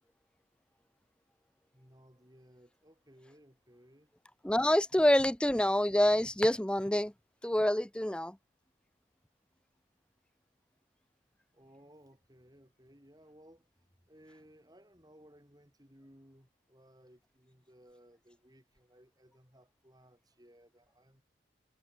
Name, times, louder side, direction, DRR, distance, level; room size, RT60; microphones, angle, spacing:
voice 1, 1.7-4.1 11.5-21.2, equal, 20° right, 6.9 m, -60 dB
voice 2, 4.4-7.1 7.4-8.4, left 1 dB, 5° left, 0.5 m, -27 dB
head